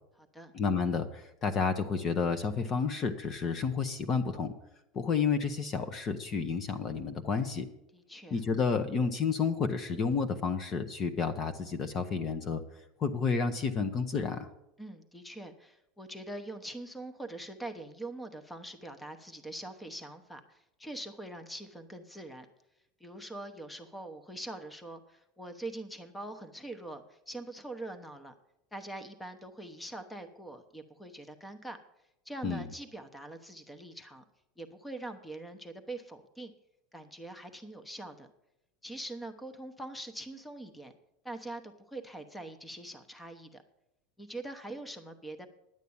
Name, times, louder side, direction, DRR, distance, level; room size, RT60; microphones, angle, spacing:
voice 1, 0.5-4.5 4.9-7.7 8.3-12.6 13.0-14.5 32.4-32.7, left 5 dB, 30° left, 9 dB, 0.9 m, -30 dB
voice 2, 7.9-8.4 14.8-22.5 23.0-28.3 28.7-31.8 32.2-34.2 34.6-36.5 36.9-38.3 38.8-40.9 41.2-43.6 44.2-45.5, right 1 dB, 5° left, 9 dB, 1.0 m, -43 dB
10.5 x 8.2 x 7.1 m, 0.86 s
supercardioid pair, 135°, 0 cm